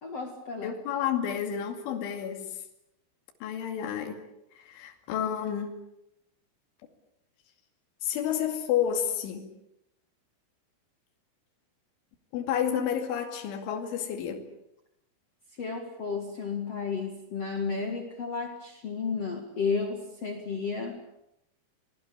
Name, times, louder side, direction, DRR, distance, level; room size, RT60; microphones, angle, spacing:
voice 1, 0.0-0.7 15.6-21.0, left 5 dB, 50° left, 4 dB, 1.9 m, -32 dB
voice 2, 0.6-2.4 3.4-4.2 4.6-5.7 8.0-9.5 12.3-14.4, left 9 dB, 70° left, 4 dB, 4.7 m, -30 dB
27.5 x 20.0 x 8.6 m, 0.84 s
omnidirectional pair, 5.8 m